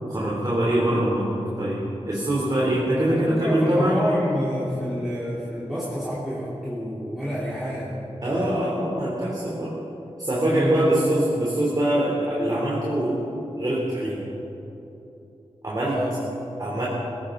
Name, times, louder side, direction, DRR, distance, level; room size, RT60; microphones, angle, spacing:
voice 1, 0.0-4.0 8.2-9.7 10.2-13.2 13.6-14.2 15.6-16.0 16.6-16.9, right 1 dB, 35° right, -5 dB, 2.9 m, -23 dB
voice 2, 3.1-8.2 10.4-11.1 15.8-16.2, equal, ahead, -10 dB, 3.3 m, -28 dB
19.5 x 16.5 x 3.8 m, 3.0 s
wide cardioid pair, 95°, 12 cm